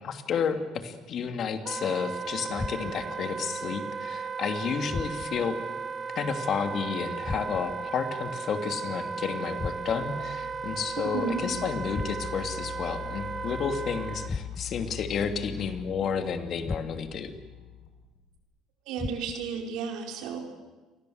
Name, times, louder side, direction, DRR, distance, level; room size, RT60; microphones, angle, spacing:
voice 1, 0.0-5.5 6.1-17.3, left 6 dB, 45° left, 7 dB, 2.9 m, -31 dB
Wind instrument woodwind instrument, 1.6-14.3, right 5 dB, 25° right, 1.1 m, -36 dB
sound 1, 2.5-3.2 4.9-5.5 7.2-7.9 9.6-10.2 11.9-12.6 14.3-14.9 16.6-17.3 19.0-19.6, left 3 dB, 15° left, 0.9 m, -37 dB
sound 2, 9.8-18.4, left 12 dB, 85° left, 5.9 m, -43 dB
voice 2, 11.0-11.5 18.8-20.4, right 6 dB, 75° right, 3 dB, 4.9 m, -33 dB
29.5 x 23.5 x 8.1 m, 1.2 s
cardioid pair, 140°, 0 cm